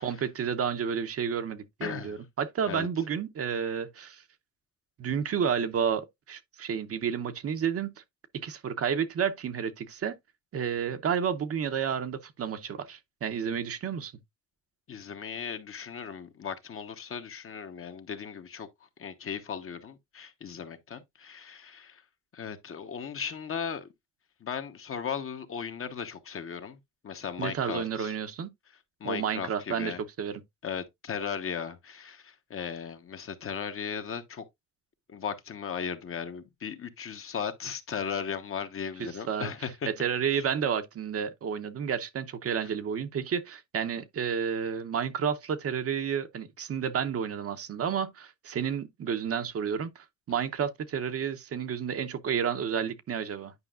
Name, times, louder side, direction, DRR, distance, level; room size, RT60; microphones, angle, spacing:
voice 1, 0.0-4.2 5.0-8.0 8.4-10.2 10.5-14.1 27.4-28.5 29.0-30.4 39.0-39.5 39.9-53.5, right 7 dB, 50° right, 0.8 m, -31 dB
voice 2, 1.8-2.2 2.7-2.9 14.9-18.7 19.0-22.0 22.3-23.9 24.4-26.8 27.0-28.1 29.0-30.0 30.6-34.4 35.1-39.9, left 7 dB, 45° left, 1.1 m, -37 dB
9.7 x 5.1 x 2.4 m
cardioid pair, 90°, 30 cm